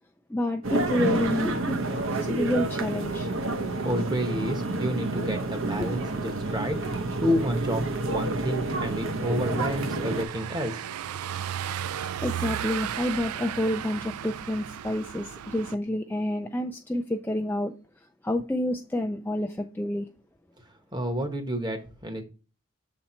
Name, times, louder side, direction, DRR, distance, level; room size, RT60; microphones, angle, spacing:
voice 1, 0.3-1.8 2.2-3.3 5.8-5.9 12.2-17.7 18.2-20.1, left 1 dB, 10° left, 0.3 m, -28 dB
sound 1, 0.6-10.2, right 2 dB, 60° right, 0.8 m, -29 dB
voice 2, 3.8-6.8 7.2-10.8 20.9-22.2, equal, 20° right, 1.0 m, -30 dB
Car passing by / Engine, 9.0-15.8, right 10 dB, 85° right, 0.4 m, -35 dB
6.9 x 4.2 x 4.3 m
head